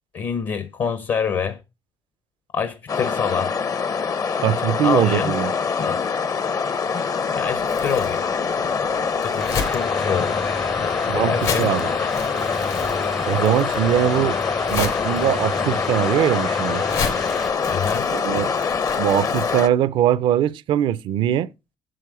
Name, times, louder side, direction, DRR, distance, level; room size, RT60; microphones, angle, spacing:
voice 1, 0.1-1.6 2.5-3.5 4.8-5.3 5.8-6.0 7.3-8.2 9.2-10.4 10.8-12.1 17.7-18.1, left 6 dB, 60° left, 1.0 m, -26 dB
sound 1, 2.9-19.7, left 5 dB, 45° left, 0.7 m, -24 dB
voice 2, 4.4-5.5 11.1-11.9 13.3-14.4 14.7-16.8 18.1-18.5 19.0-21.5, right 11 dB, 80° right, 0.5 m, -21 dB
Crumpling crinkling, 7.4-19.6, left 6 dB, 85° left, 3.2 m, -34 dB
sound 2, 9.4-17.5, equal, 5° left, 0.4 m, -34 dB
7.7 x 7.6 x 4.9 m
cardioid pair, 85°, 8 cm